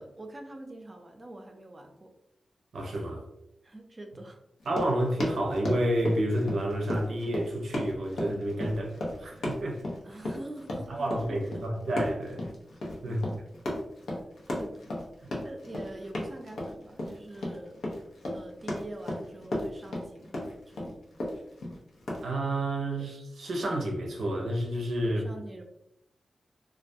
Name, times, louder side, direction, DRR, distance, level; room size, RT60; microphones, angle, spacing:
voice 1, 0.0-2.1 3.6-4.4 10.0-11.6 13.0-13.2 14.1-14.2 14.5-14.9 15.2-17.7 18.3-21.0 21.5-21.6 23.0-23.1 25.0-25.6, right 1 dB, 40° right, 0.5 m, -45 dB
voice 2, 2.7-3.2 4.7-9.8 10.9-12.5 13.0-13.2 15.2-15.3 22.2-25.2, right 1 dB, 85° right, 0.5 m, -30 dB
Run, 4.6-22.3, left 1 dB, 90° left, 0.6 m, -35 dB
2.3 x 2.2 x 2.6 m
cardioid pair, 70°, 0 cm